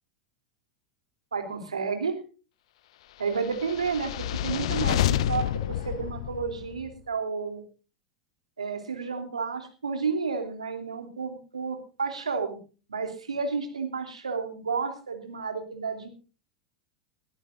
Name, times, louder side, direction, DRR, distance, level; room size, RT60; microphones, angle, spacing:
voice 1, 1.3-2.2 3.2-7.6 8.6-12.6 12.9-16.1, right 5 dB, 85° right, 6 dB, 3.2 m, -31 dB
sound 1, 3.4-6.9, left 12 dB, 65° left, 0.7 m, -28 dB
21.5 x 13.5 x 2.6 m, 0.35 s
figure-of-eight pair, 85°, 3 cm